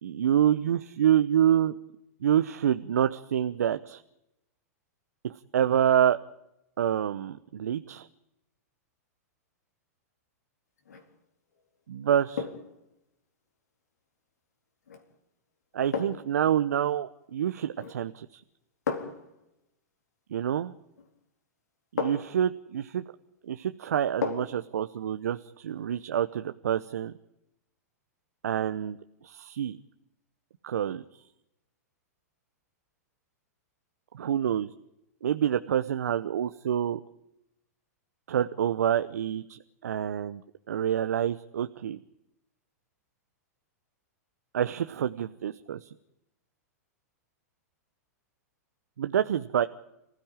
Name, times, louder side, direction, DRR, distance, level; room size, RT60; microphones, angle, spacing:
voice 1, 0.0-1.7 2.2-4.0 5.2-6.2 6.8-8.1 11.9-12.5 15.7-18.4 20.3-20.7 21.9-23.0 23.5-27.1 28.4-29.0 29.2-29.8 30.6-31.0 34.1-34.7 35.2-37.0 38.3-40.4 40.7-42.0 44.5-45.9 49.0-49.7, right 10 dB, 75° right, 10 dB, 0.9 m, -27 dB
sound 1, 10.8-11.1 12.4-12.8 14.9-15.1 15.9-16.4 17.7-18.1 18.9-19.3 21.0-21.1 22.0-22.4 24.2-24.7 25.0-25.1, left 5 dB, 80° left, 4.0 m, -34 dB
27.5 x 16.0 x 9.1 m, 0.87 s
hypercardioid pair, 110°, 9 cm